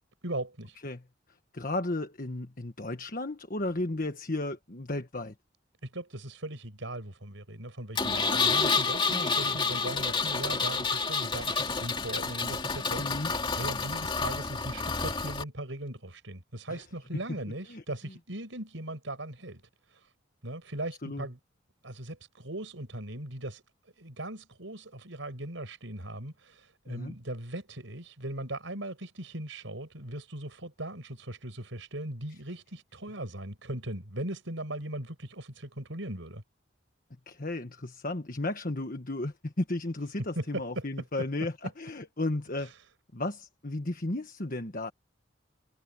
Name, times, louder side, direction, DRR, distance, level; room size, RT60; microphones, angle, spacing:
voice 1, 0.2-0.8 5.8-13.3 13.6-19.6 19.9-20.1 20.4-21.4 21.8-23.6 24.0-36.4 40.3-40.9 42.6-42.7, right 1 dB, 80° right, 5.1 m, -39 dB
voice 2, 1.5-5.3 9.1-9.6 13.0-13.3 16.7-16.8 17.7-17.8 21.0-21.3 26.9-27.1 37.3-42.7 43.1-44.9, left 2 dB, 45° left, 1.4 m, -34 dB
Engine, 8.0-15.4, left 4 dB, 25° left, 2.6 m, -29 dB
head